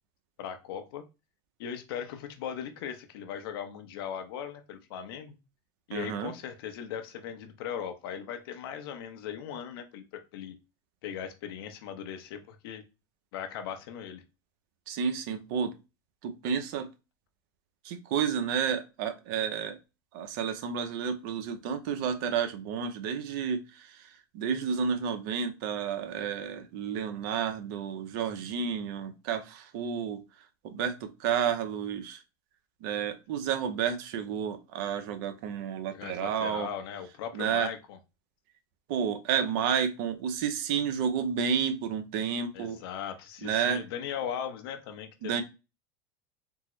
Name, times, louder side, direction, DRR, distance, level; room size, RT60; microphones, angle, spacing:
voice 1, 0.4-1.0 1.6-5.4 5.9-10.0 10.3-10.6 11.0-12.8 13.3-14.2 35.9-38.0 42.5-45.4, left 8 dB, 75° left, 8 dB, 0.6 m, -38 dB
voice 2, 5.9-6.3 14.9-15.7 16.2-16.9 17.8-19.8 20.1-30.2 30.6-32.2 32.8-36.7 37.3-37.7 38.9-42.8 43.4-43.8 45.2-45.4, right 7 dB, 65° right, 8 dB, 0.6 m, -31 dB
3.5 x 2.0 x 2.9 m, 0.27 s
supercardioid pair, 125°, 13 cm